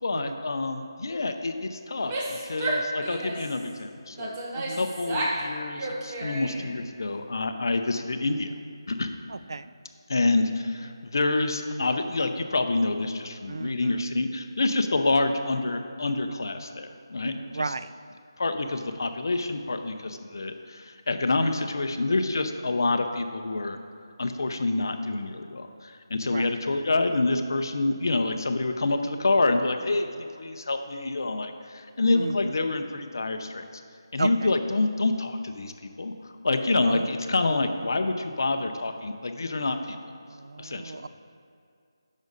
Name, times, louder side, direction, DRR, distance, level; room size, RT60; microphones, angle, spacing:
voice 1, 0.0-4.3 4.7-8.5 8.9-9.1 10.1-17.6 18.4-23.8 24.2-33.6 34.1-35.7 36.0-40.0 40.6-41.0, left 2 dB, 50° left, 7 dB, 0.7 m, -27 dB
Female speech woman speaking / Yell, 1.9-3.6 4.2-5.5 5.7-6.7, right 1 dB, 15° right, 0.7 m, -31 dB
voice 2, 9.3-9.7 10.2-10.4 11.7-11.9 13.5-14.1 17.2-17.9 26.2-26.5 32.1-32.6 34.2-34.5 36.9-37.1 40.3-41.1, right 3 dB, 60° right, 13 dB, 0.3 m, -34 dB
10.0 x 6.3 x 4.0 m, 2.4 s
figure-of-eight pair, 175°, 2 cm